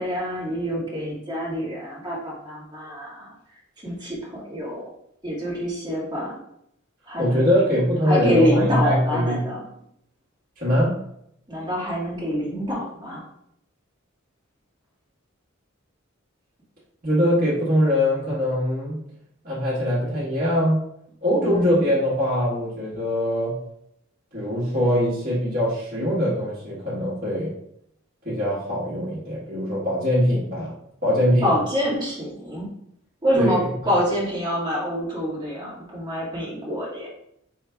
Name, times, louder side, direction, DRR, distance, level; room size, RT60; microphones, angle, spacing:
voice 1, 0.0-3.3 3.8-4.8 5.2-6.4 7.1-7.5 8.1-9.6 11.5-13.2 21.4-21.8 31.4-32.7 33.2-37.1, equal, 20° right, -6 dB, 1.8 m, -26 dB
voice 2, 7.2-9.4 10.6-10.9 17.0-19.0 19.4-20.8 21.2-23.6 24.3-27.5 28.2-30.7 31.0-31.5 33.3-33.6, equal, 45° right, -10 dB, 1.5 m, -22 dB
4.8 x 3.1 x 3.4 m, 0.73 s
head